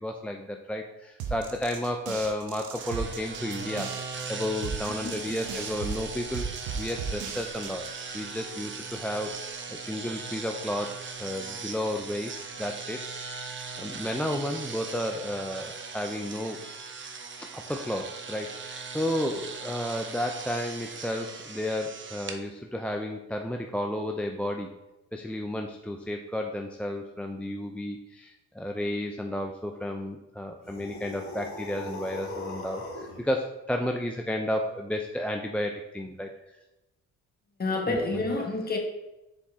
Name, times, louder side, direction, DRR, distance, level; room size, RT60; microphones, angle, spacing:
voice 1, 0.0-6.5 6.8-7.9 8.1-9.4 9.7-16.6 17.4-24.7 25.1-36.3 37.9-38.3, left 1 dB, 5° left, 2 dB, 0.4 m, -32 dB
sound 1, 1.2-8.0, right 6 dB, 85° right, 0.9 m, -37 dB
sound 2, 2.8-22.4, right 5 dB, 40° right, 0.8 m, -39 dB
voice 2, 5.0-5.5 37.6-38.8, left 2 dB, 30° left, 1 dB, 1.4 m, -30 dB
sound 3, 30.6-33.2, left 2 dB, 45° left, 1.6 m, -39 dB
7.1 x 4.5 x 3.6 m, 0.97 s
cardioid pair, 90°, 30 cm